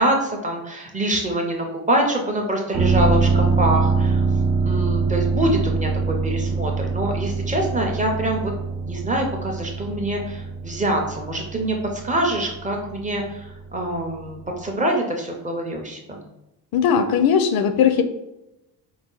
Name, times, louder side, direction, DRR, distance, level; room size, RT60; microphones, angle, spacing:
voice 1, 0.0-4.2 4.6-8.5 8.9-16.2, right 1 dB, 20° right, 1 dB, 0.5 m, -25 dB
sound 1, 2.7-14.3 14.6-14.7, right 4 dB, 65° right, 0.7 m, -24 dB
voice 2, 16.7-18.0, left 7 dB, 65° left, 8 dB, 0.5 m, -18 dB
4.8 x 2.3 x 3.7 m, 0.93 s
cardioid pair, 175°, 39 cm